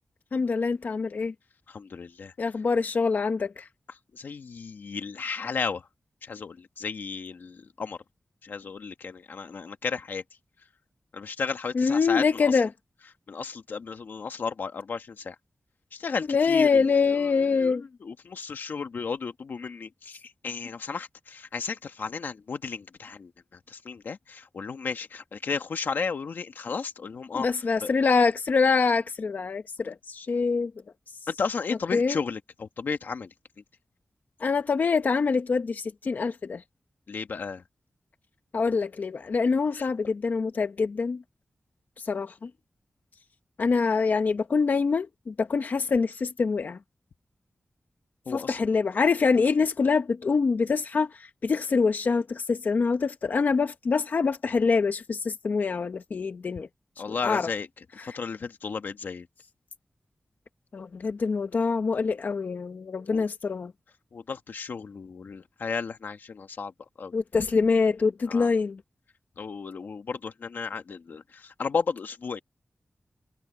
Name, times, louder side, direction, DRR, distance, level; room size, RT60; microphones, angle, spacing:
voice 1, 0.3-1.3 2.4-3.7 11.7-12.7 16.3-17.8 27.3-30.7 31.9-32.2 34.4-36.6 38.5-41.2 42.0-42.5 43.6-46.8 48.3-56.7 57.1-57.5 58.0-58.2 60.7-63.7 67.1-68.8, left 4 dB, 65° left, 1.0 m, -25 dB
voice 2, 1.7-2.3 4.1-5.9 6.2-8.0 8.4-10.2 11.1-12.6 13.3-15.4 15.9-27.5 27.8-27.9 31.3-33.3 37.1-37.6 39.7-39.9 48.2-48.6 57.0-57.7 58.0-59.3 63.1-63.2 64.1-66.7 67.0-67.1 68.3-68.5 69.4-72.4, left 5 dB, 80° left, 1.4 m, -34 dB
wide cardioid pair, 115°, 3 cm